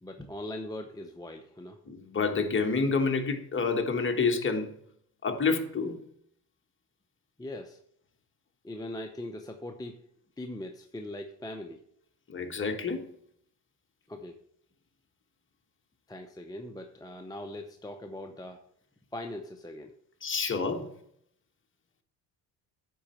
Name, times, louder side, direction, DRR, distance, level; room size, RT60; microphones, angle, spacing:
voice 1, 0.0-1.8 7.4-7.8 8.6-10.1 10.4-11.8 14.1-14.4 16.1-18.6 19.1-20.0, left 1 dB, 10° left, 0.7 m, -40 dB
voice 2, 1.9-4.7 5.2-6.0 12.3-13.1 20.2-20.9, left 4 dB, 30° left, 1.4 m, -28 dB
10.0 x 4.2 x 7.6 m
cardioid pair, 110°, 41 cm